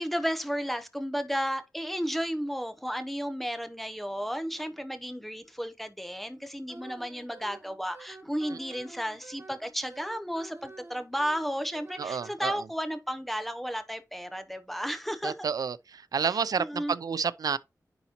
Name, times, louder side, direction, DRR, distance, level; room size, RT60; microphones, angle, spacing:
voice 1, 0.0-15.4 16.2-16.9, equal, ahead, 0.7 m, -33 dB
Wind instrument woodwind instrument, 6.7-12.4, right 3 dB, 35° right, 1.8 m, -49 dB
voice 2, 12.0-12.5 15.2-17.6, right 6 dB, 80° right, 0.4 m, -30 dB
9.9 x 4.0 x 2.9 m
wide cardioid pair, 115°, 6 cm